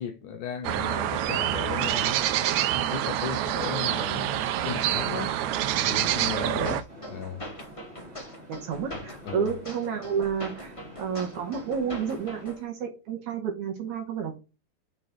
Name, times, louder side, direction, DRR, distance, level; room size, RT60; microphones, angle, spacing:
voice 1, 0.0-2.2 2.7-6.8 7.1-7.4 8.9-9.0 9.2-9.5, left 8 dB, 75° left, 2.0 m, -36 dB
sound 1, 0.6-6.8, right 11 dB, 90° right, 1.6 m, -26 dB
sound 2, 6.6-12.6, equal, 30° left, 0.5 m, -42 dB
sound 3, 6.9-12.4, equal, 20° right, 1.1 m, -48 dB
voice 2, 8.5-10.7 11.0-14.4, right 7 dB, 65° right, 2.3 m, -30 dB
6.2 x 4.1 x 6.4 m
omnidirectional pair, 4.1 m